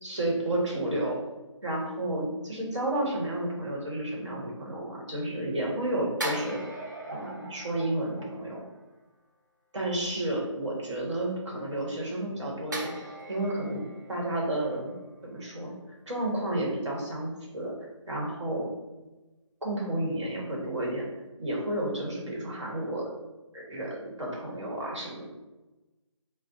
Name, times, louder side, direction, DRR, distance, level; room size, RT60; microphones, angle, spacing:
voice 1, 0.0-1.2 1.6-6.6 7.1-8.6 9.7-12.9 13.3-13.8 14.1-14.9 15.2-17.7 18.1-18.7 19.6-21.0 21.4-23.0 23.5-25.3, right 1 dB, 60° right, -3 dB, 1.2 m, -31 dB
sound 1, 6.2-8.9 12.7-15.9 16.2-16.4, right 1 dB, 35° right, 0.4 m, -40 dB
4.0 x 2.0 x 2.7 m, 1.1 s
figure-of-eight pair, 175°, 17 cm